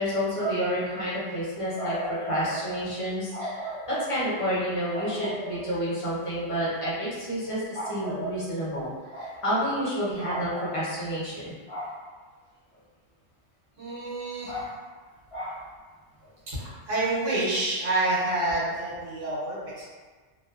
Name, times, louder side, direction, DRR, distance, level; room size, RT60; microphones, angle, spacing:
voice 1, 0.0-11.9 14.5-14.7 15.3-15.6, equal, 30° left, -9 dB, 0.8 m, -29 dB
voice 2, 13.8-14.5 16.5-19.9, right 2 dB, 90° right, -8 dB, 1.3 m, -28 dB
2.9 x 2.0 x 2.4 m, 1.4 s
omnidirectional pair, 1.3 m